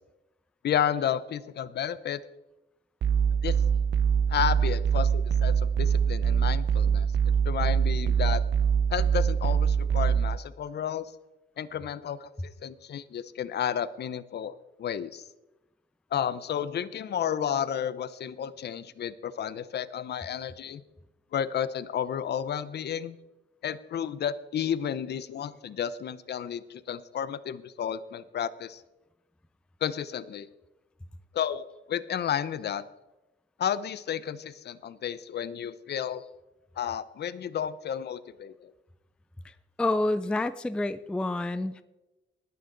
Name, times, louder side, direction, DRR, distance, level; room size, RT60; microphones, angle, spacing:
voice 1, 0.6-2.2 3.4-3.6 4.3-8.4 8.9-11.1 11.6-15.2 16.1-20.8 21.3-23.2 23.6-28.8 29.8-30.5 31.3-32.8 33.6-36.2 36.8-38.7, left 9 dB, 60° left, 15 dB, 0.7 m, -32 dB
sound 1, 3.0-10.4, right 7 dB, 60° right, 0.8 m, -24 dB
voice 2, 39.4-41.8, left 2 dB, 5° left, 12 dB, 0.3 m, -29 dB
19.5 x 9.5 x 3.9 m, 1.0 s
wide cardioid pair, 175°, 20 cm